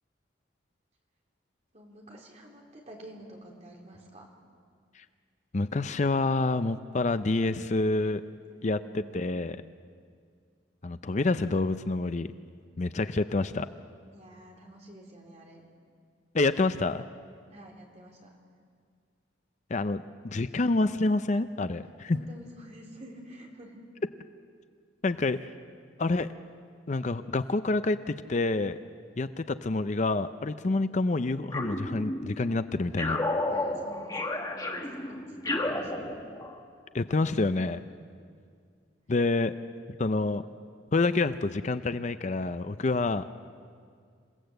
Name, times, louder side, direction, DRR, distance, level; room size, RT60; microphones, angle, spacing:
voice 1, 1.7-4.3 8.5-9.3 14.1-15.7 17.5-18.3 22.1-23.8 33.5-36.0, right 1 dB, 35° right, 0 dB, 3.5 m, -49 dB
voice 2, 5.5-8.2 8.6-9.6 10.8-12.3 12.8-13.7 16.3-17.0 19.7-22.2 25.0-25.5 26.0-26.3 26.9-28.8 29.2-33.2 36.9-37.8 39.1-39.5 40.0-40.4 40.9-43.2, left 3 dB, 40° left, 11 dB, 0.5 m, -27 dB
sound 1, 31.5-32.5 33.0-36.6, left 2 dB, 20° left, 1.6 m, -32 dB
27.5 x 16.5 x 7.9 m, 2.1 s
head